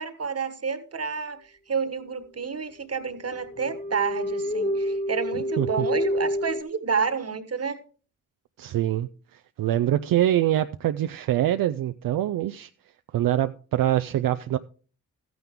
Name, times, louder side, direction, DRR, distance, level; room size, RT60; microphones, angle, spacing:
voice 1, 0.0-7.8, right 5 dB, 45° right, 1.5 m, -30 dB
sound 1, 3.3-6.6, equal, 20° left, 1.8 m, -28 dB
voice 2, 5.6-5.9 8.6-12.7 13.1-14.6, right 12 dB, 75° right, 0.5 m, -24 dB
13.5 x 9.4 x 3.6 m
supercardioid pair, 45°, 34 cm